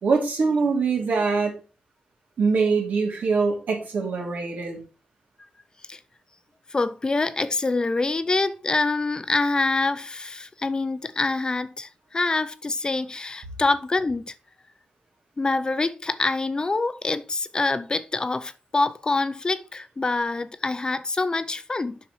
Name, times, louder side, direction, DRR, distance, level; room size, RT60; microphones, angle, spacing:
voice 1, 0.0-1.6 2.4-4.8, right 4 dB, 80° right, 2.8 m, -23 dB
voice 2, 6.7-14.3 15.4-22.0, left 3 dB, 30° left, 0.5 m, -25 dB
7.3 x 5.9 x 4.3 m
wide cardioid pair, 130°, 3 cm